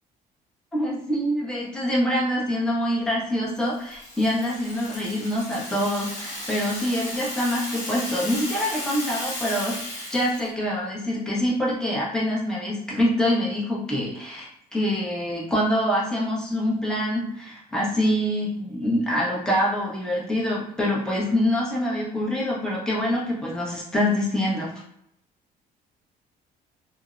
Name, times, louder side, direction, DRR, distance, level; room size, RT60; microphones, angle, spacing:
voice 1, 0.7-9.8 10.1-24.7, equal, 5° left, -5 dB, 0.8 m, -25 dB
Rattle (instrument), 3.6-10.5, left 1 dB, 40° left, 1.4 m, -35 dB
2.5 x 2.0 x 2.4 m, 0.76 s
cardioid pair, 110°, 17 cm